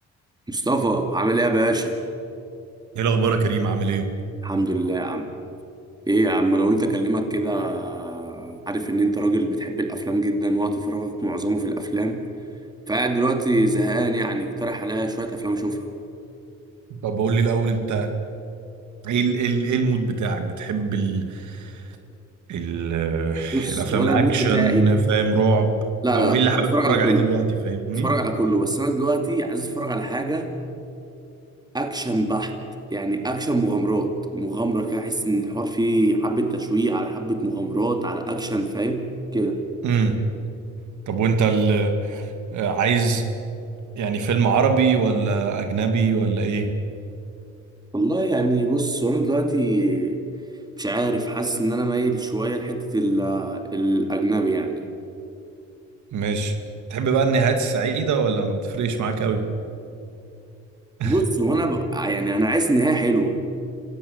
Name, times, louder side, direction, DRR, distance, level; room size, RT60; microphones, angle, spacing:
voice 1, 0.5-1.9 4.4-5.3 6.1-12.3 12.9-15.9 23.5-24.9 26.0-27.2 27.9-30.5 31.7-32.6 32.9-39.7 47.9-50.2 50.8-54.7 61.0-63.4, right 2 dB, 15° right, 5 dB, 2.5 m, -23 dB
voice 2, 2.9-4.1 17.0-18.1 19.0-21.8 22.5-25.8 26.1-28.1 39.8-40.2 41.1-43.2 44.0-46.7 56.1-56.5 56.9-59.4 61.0-61.2, right 5 dB, 75° right, 6 dB, 2.3 m, -22 dB
25.5 x 16.5 x 8.1 m, 2.7 s
cardioid pair, 90°, 30 cm